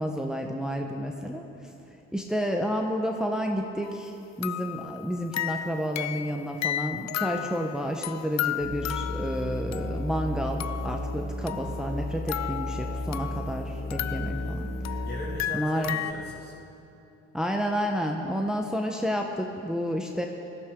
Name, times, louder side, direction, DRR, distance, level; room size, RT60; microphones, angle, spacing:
voice 1, 0.0-1.4 2.1-14.7 15.5-16.0 17.3-20.3, equal, ahead, 2 dB, 1.0 m, -30 dB
sound 1, 3.8-4.0 4.4-10.3 10.6-11.0 11.5-13.6 13.9-16.1, left 12 dB, 65° left, 0.5 m, -34 dB
Musical instrument, 8.6-15.3, left 1 dB, 90° left, 4.0 m, -34 dB
voice 2, 13.9-16.5, left 1 dB, 30° left, -7 dB, 2.3 m, -40 dB
19.5 x 13.5 x 3.8 m, 2.8 s
cardioid pair, 90°, 30 cm